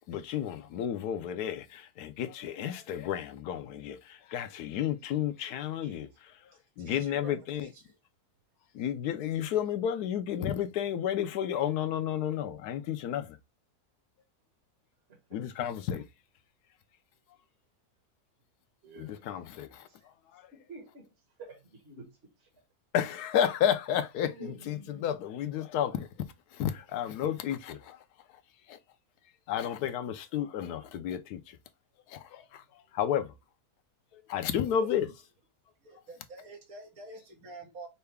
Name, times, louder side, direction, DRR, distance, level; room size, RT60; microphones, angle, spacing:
voice 1, 0.1-6.3 6.8-7.7 8.7-13.4 15.3-16.0 19.0-19.9 20.3-20.5 22.9-26.1 26.5-28.0 28.7-28.8 29.5-31.6 32.1-33.3 34.1-35.1, left 9 dB, 90° left, 1.2 m, -32 dB
voice 2, 6.8-8.0 34.8-35.1 35.8-37.9, right 3 dB, 70° right, 1.8 m, -48 dB
voice 3, 18.8-19.2 19.9-20.1 20.5-21.1 21.4-22.1 22.4-22.5 24.3-25.1, right 3 dB, 45° right, 1.5 m, -49 dB
5.6 x 2.3 x 3.3 m
omnidirectional pair, 1.6 m